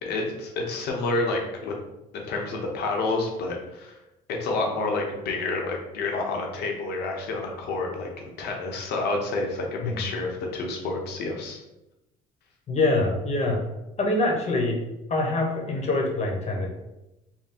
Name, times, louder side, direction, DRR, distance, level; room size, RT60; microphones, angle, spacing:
voice 1, 0.0-1.8 2.1-4.0 4.3-11.6, left 3 dB, 75° left, 1 dB, 1.0 m, -29 dB
voice 2, 12.7-13.6 14.0-14.8 15.1-16.7, left 2 dB, 40° left, 0 dB, 1.1 m, -24 dB
3.7 x 2.3 x 4.2 m, 0.94 s
cardioid pair, 110°, 17 cm